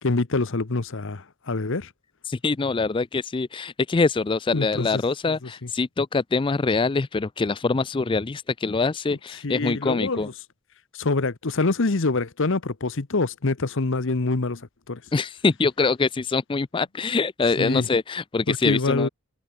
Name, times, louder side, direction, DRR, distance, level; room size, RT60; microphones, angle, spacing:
voice 1, 0.0-1.9 4.5-5.0 9.4-10.3 10.9-15.0 17.6-17.9 18.5-19.1, left 3 dB, 60° left, 1.0 m, -25 dB
voice 2, 2.2-10.3 15.1-19.1, left 4 dB, 20° left, 0.4 m, -24 dB
head